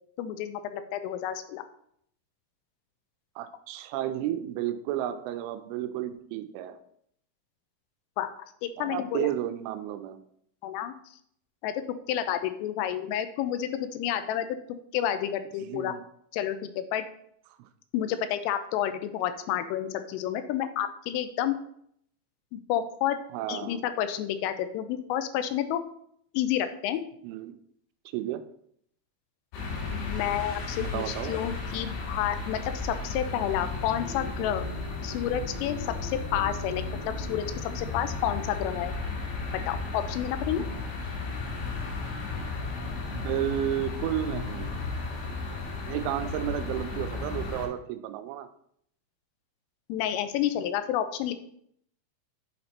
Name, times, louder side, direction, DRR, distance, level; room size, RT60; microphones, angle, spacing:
voice 1, 0.2-1.6 8.2-8.3 8.6-9.3 10.6-10.9 11.6-11.7 12.1-14.5 14.9-15.9 16.3-17.1 17.9-21.6 22.5-23.2 23.5-25.8 26.3-27.0 29.9-34.6 35.0-38.9 39.5-40.6 49.9-51.3, left 10 dB, 90° left, 10 dB, 3.2 m, -30 dB
voice 2, 3.4-6.8 8.8-10.2 15.6-16.0 23.3-23.8 27.2-27.5 28.1-28.4 30.8-31.3 40.6-40.7 43.1-44.8 45.9-48.5, right 12 dB, 85° right, 10 dB, 2.9 m, -32 dB
sound 1, 29.5-47.7, left 3 dB, 70° left, 3.6 m, -34 dB
7.8 x 4.2 x 4.3 m, 0.68 s
omnidirectional pair, 5.7 m